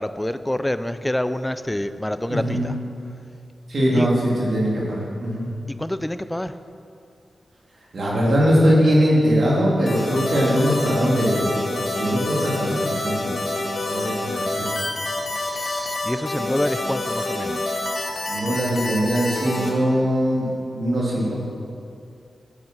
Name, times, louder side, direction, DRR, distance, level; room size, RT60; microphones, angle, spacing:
voice 1, 0.0-2.7 3.9-4.1 5.8-6.5 15.3-17.6, left 1 dB, 10° left, 12 dB, 0.5 m, -27 dB
voice 2, 2.3-2.7 3.7-5.5 7.9-11.5 11.7-13.1 13.8-14.8 18.3-20.5 20.7-21.3, equal, 60° right, -5 dB, 3.2 m, -21 dB
sound 1, 9.9-19.7, left 2 dB, 70° left, 2.5 m, -27 dB
11.0 x 10.5 x 6.1 m, 2.4 s
wide cardioid pair, 100°, 0 cm